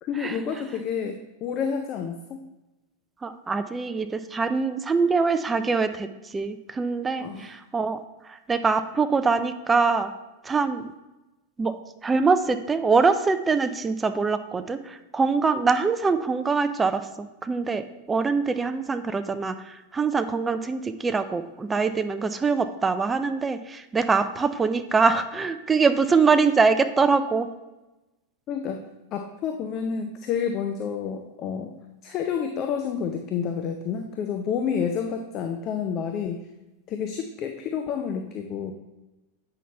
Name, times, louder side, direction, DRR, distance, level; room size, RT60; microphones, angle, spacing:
voice 1, 0.0-2.4 7.2-7.5 28.5-28.8 29.1-31.7 32.0-36.4 36.9-38.7, left 7 dB, 35° left, 5 dB, 0.5 m, -29 dB
voice 2, 3.2-8.0 8.2-10.1 10.4-10.9 11.6-11.7 12.0-27.5, right 4 dB, 15° right, 10 dB, 0.4 m, -24 dB
8.3 x 5.7 x 3.3 m, 1.0 s
figure-of-eight pair, 90°, 0 cm